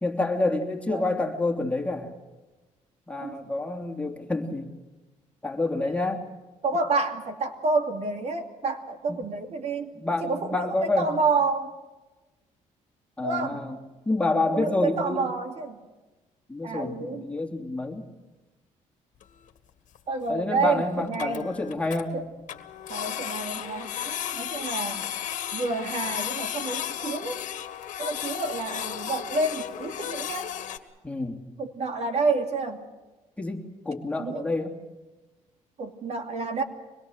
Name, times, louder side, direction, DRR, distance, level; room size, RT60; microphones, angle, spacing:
voice 1, 0.0-2.1 3.1-4.7 5.4-6.2 9.1-9.2 9.9-11.1 13.2-13.8 14.1-15.3 16.5-18.0 20.3-22.2 31.0-31.4 33.4-34.7, left 2 dB, 10° left, 2 dB, 3.0 m, -28 dB
voice 2, 6.6-9.9 10.2-11.7 13.2-13.6 14.5-15.8 16.6-17.3 20.1-21.5 22.1-22.3 22.9-25.1 25.5-27.4 28.0-30.5 31.6-32.8 34.2-34.5 35.8-36.6, right 3 dB, 55° right, 5 dB, 2.6 m, -29 dB
Printer, 19.2-19.3 19.5-19.6 20.0-20.1 20.3-20.4 20.7-20.8 21.0-22.0 22.5-30.8, left 10 dB, 70° left, 1.7 m, -34 dB
25.0 x 21.5 x 6.5 m, 1.1 s
cardioid pair, 100°, 14 cm